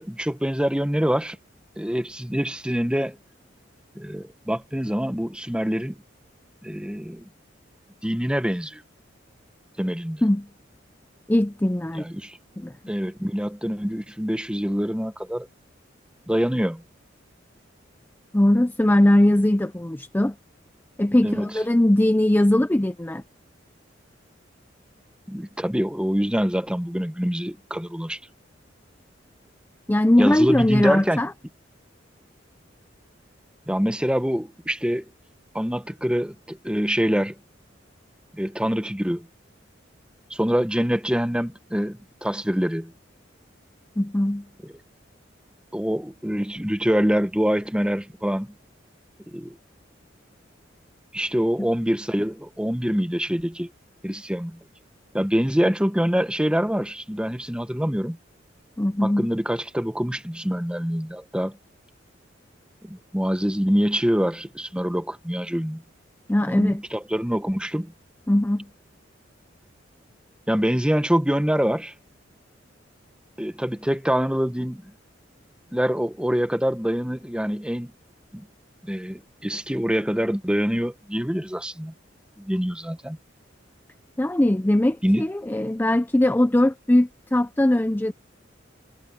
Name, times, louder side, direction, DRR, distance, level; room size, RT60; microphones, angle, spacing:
voice 1, 0.0-1.4 1.8-3.2 3.9-5.9 6.6-7.3 8.0-8.8 9.8-10.2 11.9-12.4 12.9-15.5 16.3-16.8 21.2-21.5 25.3-28.2 30.2-31.2 33.7-35.1 35.5-37.3 38.3-39.3 40.3-42.9 45.7-48.5 49.3-49.6 51.1-53.7 54.0-54.6 55.1-58.2 59.0-61.6 62.8-65.8 66.5-67.9 70.5-71.9 73.4-74.9 75.7-77.9 78.3-78.5 78.8-81.9 82.4-83.2 85.0-85.3, equal, 5° right, 1.0 m, -25 dB
voice 2, 11.3-12.0 12.6-12.7 18.3-20.4 21.0-23.2 29.9-31.3 44.0-44.5 51.6-51.7 58.8-59.3 66.3-66.8 68.3-68.7 84.2-88.1, left 1 dB, 10° left, 0.5 m, -20 dB
head